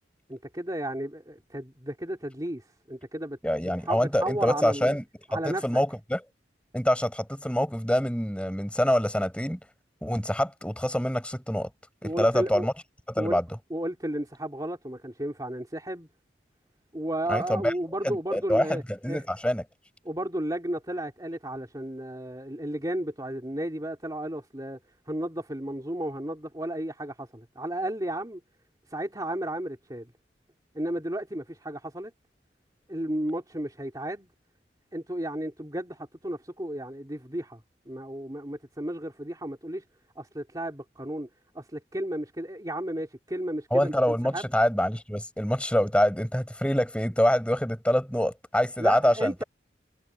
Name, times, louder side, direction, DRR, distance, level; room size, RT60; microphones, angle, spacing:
voice 1, 0.3-5.0 5.3-5.8 12.0-12.7 13.2-13.4 13.7-16.1 16.9-18.8 19.1-19.2 20.0-24.8 25.1-28.4 28.9-30.1 30.7-32.1 32.9-34.3 34.9-39.8 40.1-41.3 41.5-44.5 48.8-49.4, right 1 dB, 20° right, 3.4 m, -33 dB
voice 2, 3.4-5.0 5.4-6.2 6.7-9.6 10.0-11.7 12.0-12.7 13.1-13.4 17.3-17.7 18.0-19.6 43.7-49.3, equal, 5° left, 4.8 m, -25 dB
head